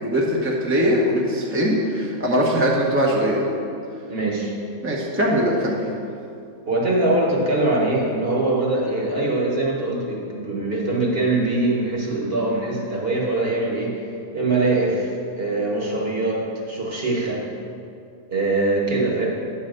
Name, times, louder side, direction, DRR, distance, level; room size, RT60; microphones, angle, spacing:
voice 1, 0.0-3.5 4.8-5.8, equal, 10° right, -4 dB, 0.8 m, -21 dB
voice 2, 4.1-4.5 6.7-14.0 14.3-17.4 18.3-19.3, right 2 dB, 45° right, -3 dB, 1.5 m, -22 dB
9.7 x 4.0 x 6.5 m, 2.5 s
omnidirectional pair, 1.5 m